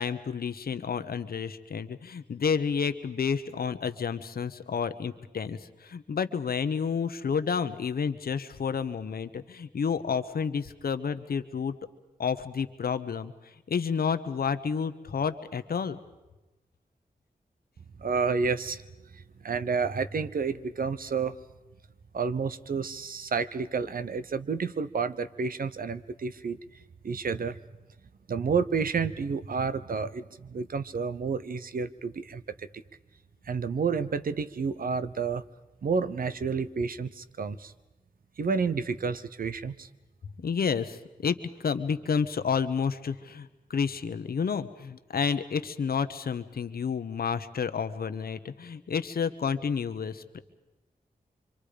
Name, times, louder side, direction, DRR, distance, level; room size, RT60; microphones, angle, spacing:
voice 1, 0.0-11.7 12.2-13.3 13.7-16.0 40.4-50.4, left 6 dB, 75° left, 11 dB, 1.0 m, -30 dB
voice 2, 18.0-18.8 19.4-21.3 22.1-26.6 27.0-27.6 28.3-32.4 33.5-35.4 35.8-37.7 38.4-39.9, right 5 dB, 65° right, 12 dB, 0.9 m, -30 dB
25.5 x 25.0 x 5.1 m, 1.1 s
wide cardioid pair, 95°, 16 cm